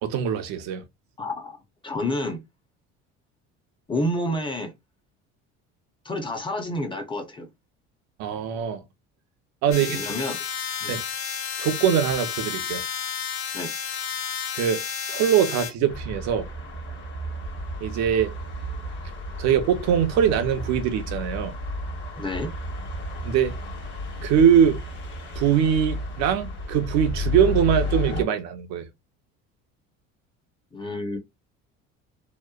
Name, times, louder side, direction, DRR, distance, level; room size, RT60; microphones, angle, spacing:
voice 1, 0.0-0.8 8.2-8.8 9.6-10.1 10.9-11.0 11.6-12.8 14.5-14.8 15.1-16.5 17.8-18.3 19.4-21.5 23.2-23.6 24.2-24.8 25.4-28.9, right 8 dB, 70° right, 0.6 m, -22 dB
voice 2, 1.2-1.6 1.8-2.4 3.9-4.7 6.0-7.5 9.7-11.0 13.5-13.7 22.2-22.5 30.7-31.2, left 1 dB, 15° left, 0.6 m, -29 dB
sound 1, 9.7-15.7, left 8 dB, 70° left, 0.8 m, -31 dB
sound 2, 15.9-28.2, left 1 dB, 40° left, 0.9 m, -32 dB
2.9 x 2.1 x 2.3 m
cardioid pair, 125°, 29 cm